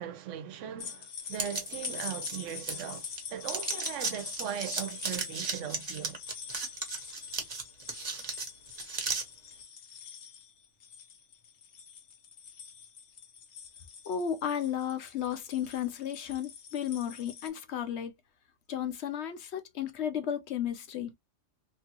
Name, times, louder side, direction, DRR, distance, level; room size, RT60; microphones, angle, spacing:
voice 1, 0.0-6.2, right 10 dB, 75° right, 0.9 m, -39 dB
sound 1, 0.8-17.5, left 6 dB, 85° left, 1.2 m, -44 dB
sound 2, 1.3-3.2 3.4-9.2, right 4 dB, 35° right, 0.8 m, -35 dB
voice 2, 14.0-18.1 18.7-21.1, left 9 dB, 65° left, 0.9 m, -33 dB
2.9 x 2.4 x 2.8 m
omnidirectional pair, 1.3 m